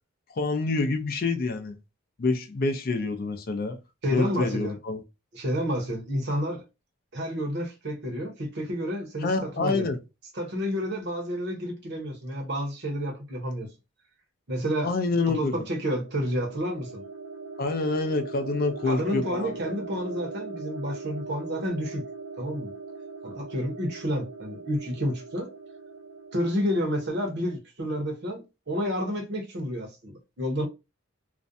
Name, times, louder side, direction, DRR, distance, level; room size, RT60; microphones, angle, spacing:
voice 1, 0.4-1.8 2.2-3.8 4.1-5.0 9.2-10.0 14.8-15.6 17.6-19.7, left 3 dB, 45° left, 0.4 m, -27 dB
voice 2, 4.0-4.8 5.3-6.6 7.1-9.9 10.3-13.7 14.5-14.9 15.3-17.0 18.8-22.0 22.4-22.7 23.2-25.5 26.3-30.6, equal, 50° right, 0.8 m, -30 dB
sound 1, 15.7-27.6, right 4 dB, 90° right, 0.4 m, -41 dB
2.5 x 2.1 x 2.5 m
head